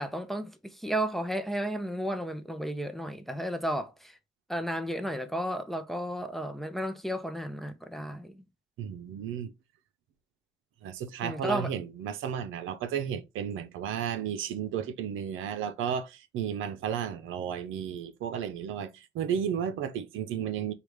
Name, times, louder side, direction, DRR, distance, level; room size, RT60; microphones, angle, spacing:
voice 1, 0.0-4.2 4.5-8.4 11.2-11.7, right 1 dB, ahead, 0.6 m, -33 dB
voice 2, 8.8-9.5 10.8-20.7, right 8 dB, 85° right, 0.6 m, -33 dB
5.0 x 2.4 x 3.1 m
cardioid pair, 90°, 20 cm